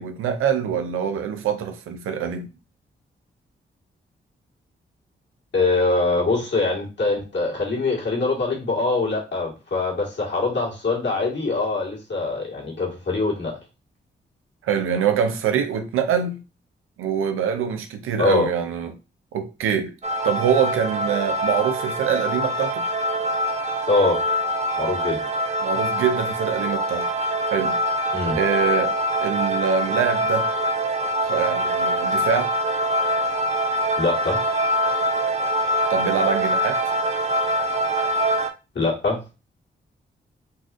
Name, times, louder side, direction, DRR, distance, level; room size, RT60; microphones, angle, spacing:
voice 1, 0.0-2.5 14.6-16.4 17.0-19.0 19.3-19.9 20.2-22.8 25.6-27.1 27.5-27.8 28.3-28.9 29.2-30.5 31.2-32.5 35.9-36.8, right 7 dB, 80° right, 0.5 m, -24 dB
voice 2, 5.5-13.6 18.2-18.5 23.9-24.2 24.8-25.2 28.1-28.4 34.0-34.4 38.8-39.2, left 3 dB, 60° left, 1.8 m, -23 dB
sound 1, 20.0-38.5, equal, 30° right, 0.5 m, -24 dB
4.0 x 2.4 x 2.5 m
supercardioid pair, 45°, 21 cm